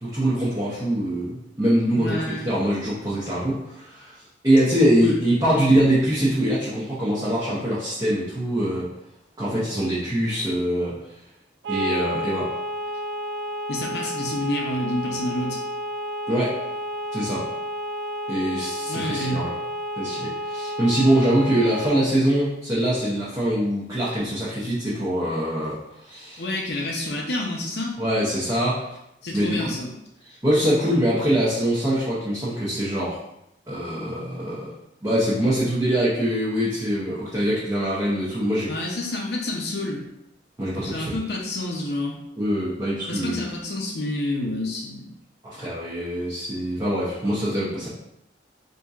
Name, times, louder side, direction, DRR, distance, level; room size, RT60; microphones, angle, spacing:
voice 1, 0.0-4.1 4.4-8.9 9.4-11.0 11.7-12.5 16.3-16.5 17.1-17.4 18.3-19.5 20.0-26.4 28.0-28.8 29.3-29.7 30.2-33.2 33.7-34.7 35.0-38.7 40.6-41.1 42.4-43.4 45.4-47.9, right 1 dB, 20° right, -9 dB, 0.7 m, -23 dB
voice 2, 1.9-2.5 5.0-5.4 13.7-15.6 18.9-19.4 26.4-28.0 29.2-29.9 38.7-40.0 40.8-42.2 43.1-45.1, left 1 dB, 60° left, -1 dB, 0.5 m, -29 dB
sound 1, 11.6-22.0, equal, 70° right, 0.4 m, -31 dB
4.3 x 2.6 x 2.3 m, 0.83 s
head